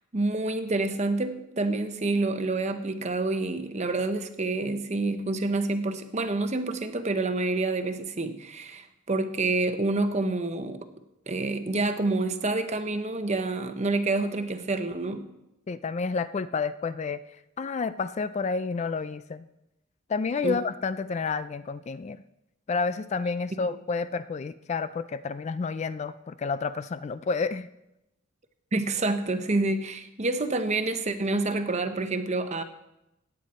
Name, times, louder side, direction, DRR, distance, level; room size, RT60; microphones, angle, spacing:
voice 1, 0.1-10.9 11.3-15.3 20.4-20.6 28.7-32.6, right 2 dB, 35° right, 8 dB, 0.9 m, -28 dB
voice 2, 15.7-17.2 17.6-19.4 20.1-22.2 22.7-27.7, left 4 dB, 35° left, 14 dB, 0.3 m, -30 dB
16.5 x 9.1 x 4.2 m, 0.90 s
head